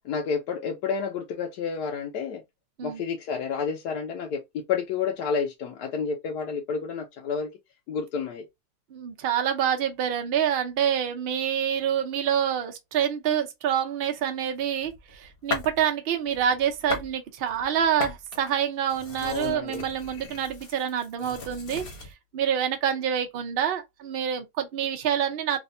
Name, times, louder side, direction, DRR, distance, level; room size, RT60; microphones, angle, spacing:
voice 1, 0.0-2.4 2.8-7.5 7.9-8.5 19.2-19.8, left 6 dB, 70° left, 1.2 m, -30 dB
voice 2, 8.9-21.8 22.3-25.6, right 9 dB, 70° right, 0.5 m, -27 dB
sound 1, 14.4-15.8 16.2-17.1 17.4-22.1, left 4 dB, 45° left, 1.0 m, -38 dB
3.3 x 2.4 x 2.5 m
omnidirectional pair, 1.9 m